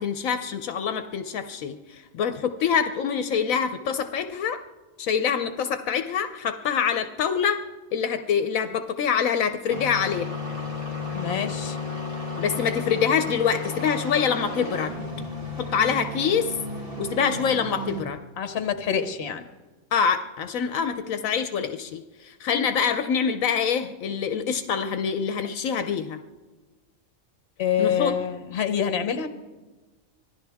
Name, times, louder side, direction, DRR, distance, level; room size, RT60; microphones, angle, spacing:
voice 1, 0.0-4.6 5.0-7.6 7.9-10.3 12.4-14.9 15.6-16.6 17.0-18.2 19.9-26.2 27.8-28.1, left 7 dB, 75° left, 8 dB, 1.1 m, -25 dB
sound 1, 9.7-18.0, left 2 dB, 45° right, 2.1 m, -33 dB
voice 2, 11.1-11.8 18.4-19.4 27.6-29.3, left 8 dB, 50° left, 9 dB, 1.2 m, -26 dB
25.0 x 16.5 x 3.5 m, 1.2 s
omnidirectional pair, 1.4 m